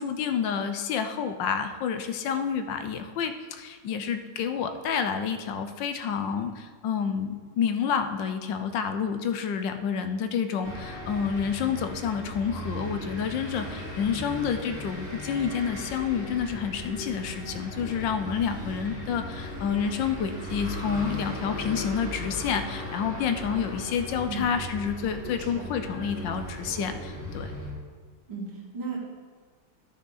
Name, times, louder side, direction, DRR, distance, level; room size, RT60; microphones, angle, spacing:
voice 1, 0.0-27.5, left 7 dB, 75° left, 8 dB, 1.3 m, -29 dB
sound 1, 10.6-27.7, left 1 dB, 30° left, 2.6 m, -37 dB
voice 2, 28.3-29.0, right 4 dB, 70° right, -5 dB, 2.6 m, -35 dB
13.5 x 5.6 x 3.9 m, 1.5 s
omnidirectional pair, 2.2 m